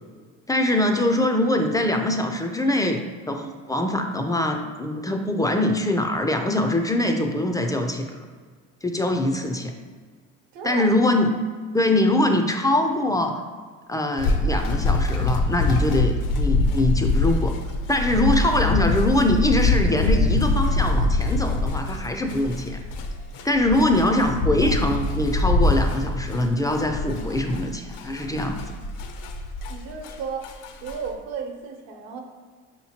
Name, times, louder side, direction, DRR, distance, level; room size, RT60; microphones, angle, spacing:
voice 1, 0.5-8.2 8.8-9.7 10.6-11.3 11.7-13.4 13.9-17.6 17.9-22.8 23.4-28.6, left 1 dB, 10° left, 4 dB, 0.3 m, -23 dB
voice 2, 10.5-11.2 24.6-24.8 29.7-30.5 30.8-32.2, right 6 dB, 65° right, 2 dB, 0.9 m, -34 dB
sound 1, 14.2-30.1 30.4-31.1, left 2 dB, 60° left, 0.6 m, -24 dB
5.4 x 2.9 x 2.8 m, 1.5 s
hypercardioid pair, 70°, 38 cm